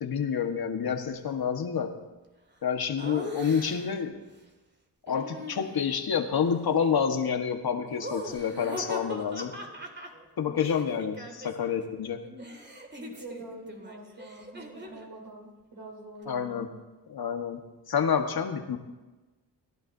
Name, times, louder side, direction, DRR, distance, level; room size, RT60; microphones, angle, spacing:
voice 1, 0.0-2.0 2.6-4.2 5.1-9.6 10.4-12.3 16.3-16.7 17.1-18.8, left 7 dB, 60° left, 5 dB, 1.6 m, -28 dB
Laughter, 3.0-4.0 5.1-6.1 7.9-11.8 12.0-15.1, right 1 dB, 25° right, 2.1 m, -42 dB
voice 2, 13.0-16.7, right 1 dB, 60° right, -2 dB, 5.4 m, -45 dB
24.5 x 11.0 x 2.8 m, 1.2 s
cardioid pair, 65°, 41 cm